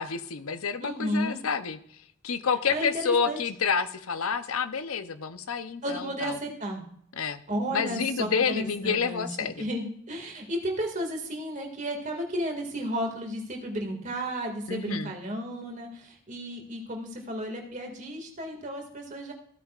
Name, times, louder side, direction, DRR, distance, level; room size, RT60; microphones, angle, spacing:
voice 1, 0.0-1.8 2.2-6.4 7.2-7.4 7.7-9.7 14.7-15.1, left 6 dB, 80° left, 11 dB, 0.7 m, -29 dB
voice 2, 0.8-1.4 2.7-3.4 5.8-6.8 7.5-9.3 9.6-19.3, equal, 35° right, 2 dB, 2.2 m, -33 dB
15.5 x 9.0 x 2.5 m, 0.65 s
head